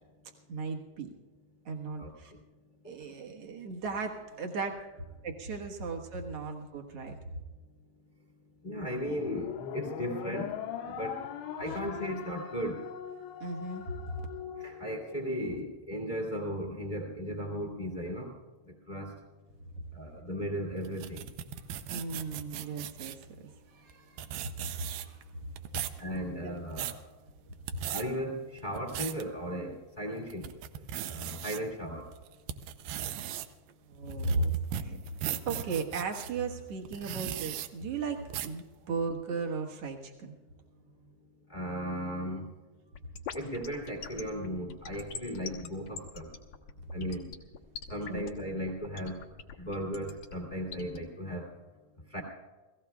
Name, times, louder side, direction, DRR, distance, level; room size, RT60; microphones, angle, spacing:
voice 1, 0.5-1.1 1.6-2.3 2.9-4.8 5.2-7.1 11.7-11.8 13.4-14.2 21.9-24.5 25.0-25.2 26.3-26.5 27.7-27.8 33.9-35.0 35.4-40.3 48.1-48.3, right 4 dB, 60° right, 2 dB, 1.6 m, -36 dB
voice 2, 8.6-10.5 10.9-11.3 11.6-12.8 14.6-18.3 18.7-19.1 19.9-21.2 26.0-27.0 27.9-30.4 31.1-32.1 41.5-42.5 43.3-46.3 46.9-47.3 47.9-49.2 49.6-51.5 52.1-52.2, equal, 30° left, 1 dB, 0.8 m, -36 dB
sound 1, 9.1-15.6, left 8 dB, 85° left, 3.1 m, -40 dB
sound 2, 20.8-23.2 23.9-24.0 24.2-25.2 25.6-26.0 26.5-27.0 27.5-28.0 28.6-29.2 29.7-29.8 30.3-31.6 32.1-36.3 36.9-37.7 38.3-38.6, right 11 dB, 80° right, 2.0 m, -37 dB
sound 3, 42.9-51.0, left 7 dB, 70° left, 1.7 m, -42 dB
30.0 x 17.0 x 2.3 m, 1.2 s
omnidirectional pair, 4.6 m